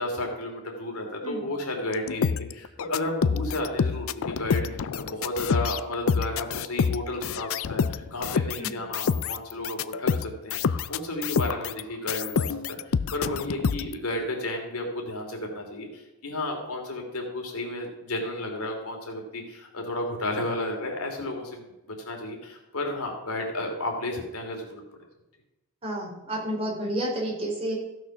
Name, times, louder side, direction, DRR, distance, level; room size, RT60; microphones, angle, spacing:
voice 1, 0.0-24.8, left 1 dB, 90° left, 2 dB, 2.8 m, -32 dB
sound 1, 1.9-11.8 12.1-13.9, left 6 dB, 70° left, 0.4 m, -27 dB
voice 2, 25.8-27.8, right 1 dB, 25° right, -3 dB, 3.8 m, -30 dB
14.5 x 6.4 x 5.9 m, 0.98 s
head